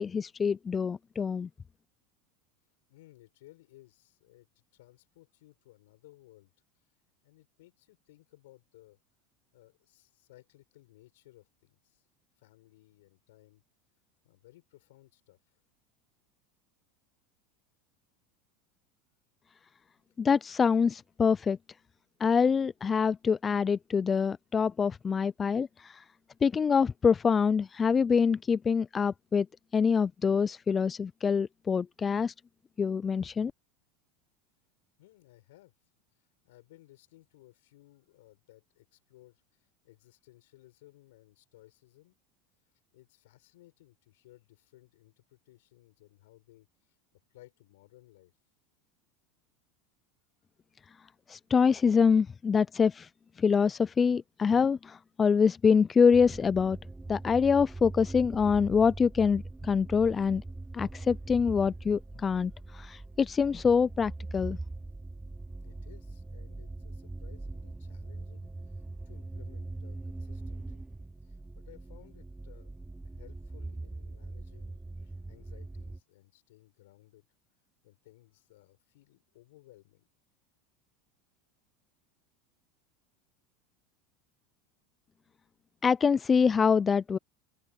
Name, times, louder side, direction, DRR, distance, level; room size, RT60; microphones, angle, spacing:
voice 1, 0.0-1.5 20.2-21.6 22.2-26.0 26.4-29.5 29.7-32.3 32.8-33.5 51.3-53.1 53.4-56.8 57.1-60.4 60.7-64.6 85.8-87.2, left 6 dB, 25° left, 0.4 m, -25 dB
voice 2, 2.9-6.5 6.8-6.9 7.2-9.0 9.5-12.0 12.4-13.6 14.2-15.6 20.0-20.2 35.0-35.7 36.1-42.2 42.9-48.3 65.6-70.8 71.2-72.8 73.0-77.3 77.8-80.1, left 17 dB, 75° left, 7.5 m, -59 dB
sound 1, 56.1-76.0, right 2 dB, 10° right, 2.6 m, -42 dB
open air
hypercardioid pair, 100°, 0 cm